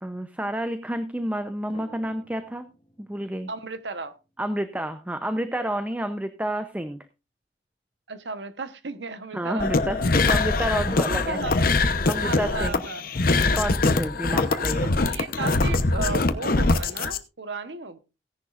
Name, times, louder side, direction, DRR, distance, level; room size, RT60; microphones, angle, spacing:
voice 1, 0.0-2.6 3.0-3.5 4.4-7.1 9.3-11.4 11.8-12.8 13.5-14.9, right 1 dB, 10° right, 9 dB, 0.6 m, -30 dB
sound 1, 1.7-3.8 10.9-11.5, left 1 dB, 30° left, 1.6 m, -42 dB
voice 2, 3.5-4.1 8.1-9.7 10.0-10.2 11.1-11.5 12.2-13.2 14.3-18.0, right 3 dB, 80° right, 11 dB, 1.1 m, -35 dB
sound 2, 9.6-17.2, left 3 dB, 55° left, 0.9 m, -23 dB
17.0 x 10.5 x 2.5 m, 0.28 s
head